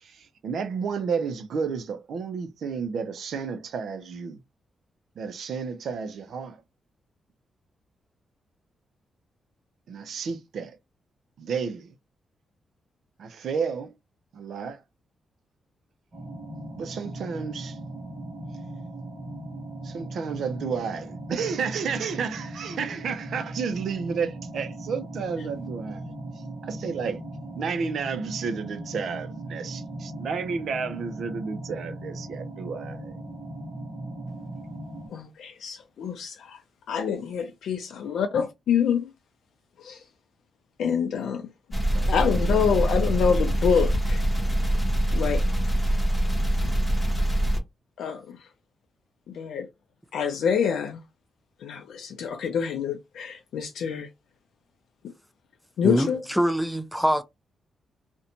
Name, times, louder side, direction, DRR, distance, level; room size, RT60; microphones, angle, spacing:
voice 1, 0.0-4.4 5.2-6.6 9.9-10.8 11.4-12.0 13.2-13.9 14.3-14.8 16.8-17.8 19.8-27.2 27.5-33.2 41.9-42.9, right 5 dB, 70° right, 0.4 m, -32 dB
sound 1, 16.1-35.1, right 1 dB, 40° right, 1.0 m, -38 dB
voice 2, 35.1-36.6 36.9-39.1 39.8-40.0 40.8-41.5 42.1-44.2 45.1-45.4 48.0-48.4 49.3-49.7 50.1-51.0 51.6-54.1 55.8-56.2, left 7 dB, 85° left, 0.4 m, -26 dB
sound 2, 41.7-47.6, right 1 dB, 15° left, 0.7 m, -24 dB
voice 3, 55.8-57.2, equal, ahead, 0.3 m, -24 dB
2.5 x 2.1 x 2.8 m
wide cardioid pair, 130°, 0 cm